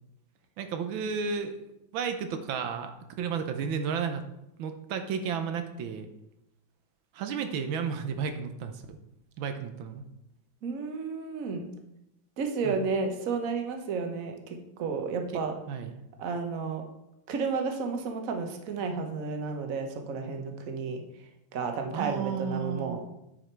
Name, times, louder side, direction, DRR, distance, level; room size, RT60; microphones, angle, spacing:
voice 1, 0.6-1.6 1.9-2.9 3.2-4.2 4.6-6.1 7.1-9.0 9.4-10.0 12.6-12.8 15.3-15.9 21.9-23.0, right 6 dB, 85° right, 7 dB, 1.5 m, -33 dB
voice 2, 10.6-11.7 12.4-15.5 16.2-16.8 17.3-21.0 21.5-23.0, right 4 dB, 50° right, 5 dB, 1.2 m, -32 dB
9.7 x 5.0 x 4.5 m, 0.85 s
omnidirectional pair, 2.1 m